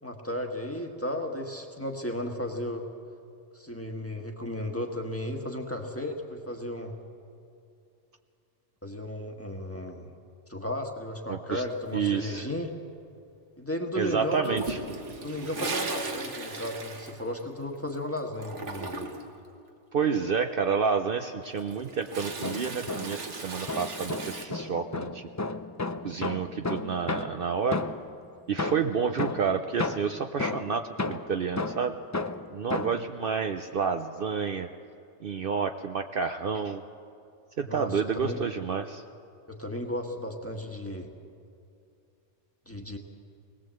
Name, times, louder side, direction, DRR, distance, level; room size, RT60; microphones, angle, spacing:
voice 1, 0.0-2.9 3.5-6.9 8.8-10.1 10.5-12.7 13.6-14.6 15.2-19.1 37.6-38.4 39.5-41.1 42.6-43.0, left 1 dB, 10° left, 2 dB, 1.6 m, -34 dB
voice 2, 11.3-11.6 11.9-12.5 13.9-14.8 19.9-25.2 26.0-27.8 28.5-31.9 32.5-34.7 35.2-36.8 37.6-39.0, right 6 dB, 55° right, 6 dB, 0.8 m, -29 dB
Toilet flush, 14.4-17.9 18.2-19.4 21.4-24.5, right 3 dB, 85° right, 1.9 m, -37 dB
sound 1, 22.2-23.3 23.7-28.2 28.6-33.1, left 3 dB, 25° left, 0.3 m, -33 dB
20.5 x 18.5 x 7.7 m, 2.5 s
omnidirectional pair, 1.2 m